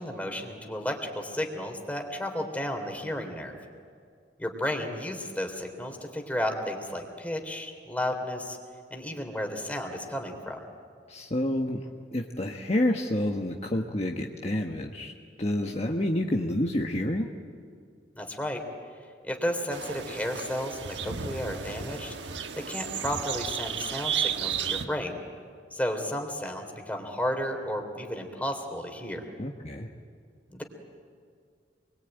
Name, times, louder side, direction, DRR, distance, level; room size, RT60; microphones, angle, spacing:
voice 1, 0.0-3.6 4.4-8.6 8.9-10.6 18.1-18.6 19.2-25.2 25.7-29.2 30.5-30.6, left 1 dB, 10° left, 3 dB, 3.3 m, -33 dB
voice 2, 11.1-11.8 12.1-15.1 15.4-17.3 29.4-29.9, left 1 dB, 40° left, 1 dB, 1.4 m, -28 dB
sound 1, 19.7-24.8, right 7 dB, 85° right, 1.3 m, -33 dB
28.0 x 22.5 x 9.2 m, 2.1 s
head